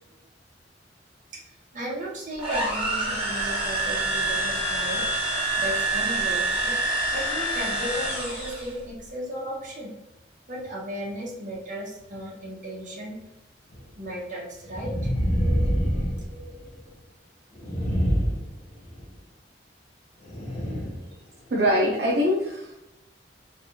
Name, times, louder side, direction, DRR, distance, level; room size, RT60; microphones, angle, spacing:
voice 1, 1.3-5.1 5.6-6.8 7.1-9.9 10.5-13.2 14.0-15.0 15.9-16.1, right 1 dB, 45° right, -4 dB, 0.9 m, -35 dB
sound 1, 2.4-8.7, right 2 dB, 5° right, 1.1 m, -27 dB
sound 2, 13.7-13.8 14.7-16.8 17.5-19.1 20.2-21.0 21.6-21.7, equal, 40° left, 0.7 m, -26 dB
voice 2, 21.5-22.8, equal, 65° right, -4 dB, 0.5 m, -23 dB
3.2 x 2.3 x 2.7 m, 0.90 s
head